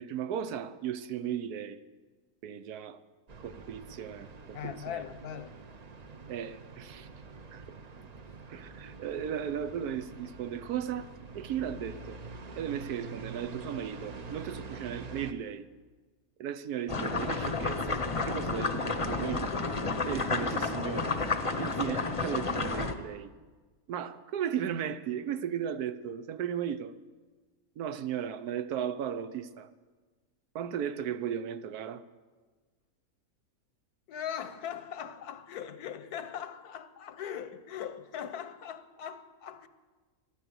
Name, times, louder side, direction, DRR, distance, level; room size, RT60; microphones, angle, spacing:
voice 1, 0.0-1.8 2.4-3.0 3.4-5.0 6.3-7.1 7.5-7.8 8.5-11.1 11.3-12.2 12.5-15.6 16.4-19.5 20.0-21.2 21.6-23.3 23.9-26.9 27.8-29.7 30.5-32.0, right 9 dB, 85° right, 1.3 m, -36 dB
sound 1, 3.3-15.3, right 4 dB, 40° right, 0.6 m, -46 dB
voice 2, 4.5-5.5 34.1-39.7, left 9 dB, 85° left, 1.4 m, -40 dB
sound 2, 16.9-22.9, left 3 dB, 30° left, 0.7 m, -31 dB
13.0 x 10.0 x 9.5 m
omnidirectional pair, 1.6 m